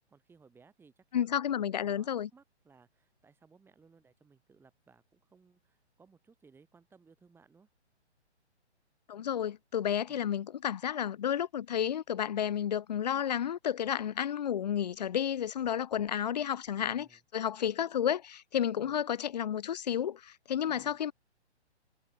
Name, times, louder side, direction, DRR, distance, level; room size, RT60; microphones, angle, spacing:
voice 1, 0.1-7.7 10.1-10.2 16.8-17.2 18.7-19.0 20.6-21.0, right 5 dB, 5° right, 4.5 m, -62 dB
voice 2, 1.1-2.3 9.1-21.1, left 9 dB, 35° left, 0.8 m, -31 dB
figure-of-eight pair, 130°, 34 cm